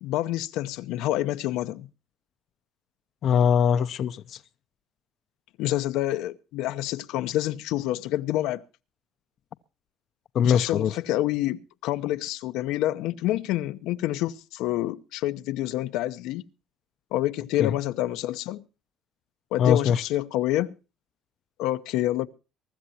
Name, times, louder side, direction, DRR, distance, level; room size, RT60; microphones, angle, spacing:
voice 1, 0.0-1.9 5.6-8.6 10.4-16.4 17.1-18.6 19.5-20.7 21.6-22.3, left 14 dB, 90° left, 0.8 m, -27 dB
voice 2, 3.2-4.4 10.3-10.9 17.6-17.7 19.6-20.0, left 8 dB, 60° left, 0.6 m, -22 dB
23.5 x 12.5 x 2.8 m
cardioid pair, 110°, 0 cm